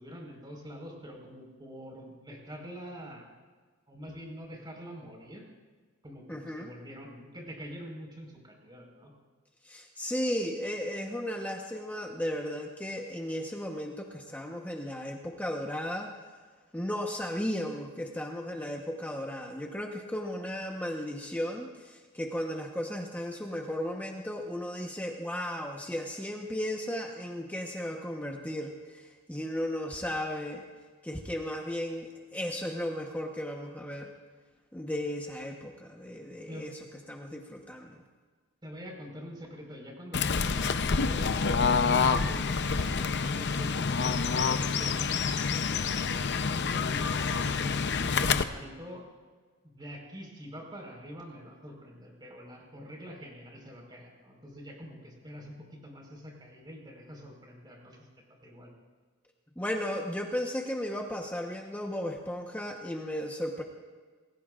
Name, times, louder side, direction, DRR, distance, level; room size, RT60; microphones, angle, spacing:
voice 1, 0.0-3.3 3.9-5.4 6.0-9.1 36.5-36.7 38.6-41.3 41.6-45.0 45.5-45.6 46.0-49.0 49.7-58.0 58.4-58.7, equal, 20° right, 0 dB, 4.7 m, -45 dB
voice 2, 6.3-6.7 9.6-16.1 16.7-30.6 31.0-34.1 34.7-36.8 37.1-38.0 59.6-63.6, equal, 10° left, 1 dB, 1.0 m, -35 dB
Fowl / Bird, 40.1-48.4, left 5 dB, 55° left, 0.7 m, -27 dB
27.5 x 20.5 x 2.5 m, 1.4 s
head